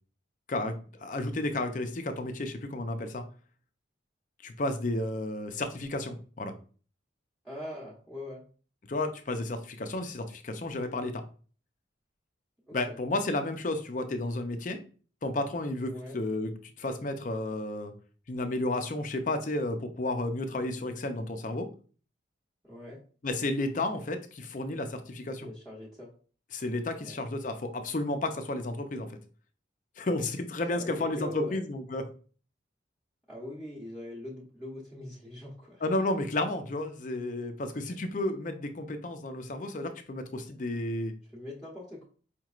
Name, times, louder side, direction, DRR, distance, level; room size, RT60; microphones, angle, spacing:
voice 1, 1.0-3.2 4.4-6.5 8.9-11.2 12.7-14.8 15.2-17.9 18.3-21.7 23.2-25.5 26.5-29.1 30.0-32.0 35.8-41.1, left 2 dB, 40° left, 7 dB, 0.5 m, -32 dB
voice 2, 7.4-8.4 12.7-13.0 15.9-16.2 22.6-23.0 25.4-26.1 27.0-27.2 30.7-31.6 33.3-35.8 41.3-42.1, left 1 dB, ahead, -6 dB, 0.9 m, -42 dB
5.1 x 3.0 x 2.4 m, 0.39 s
head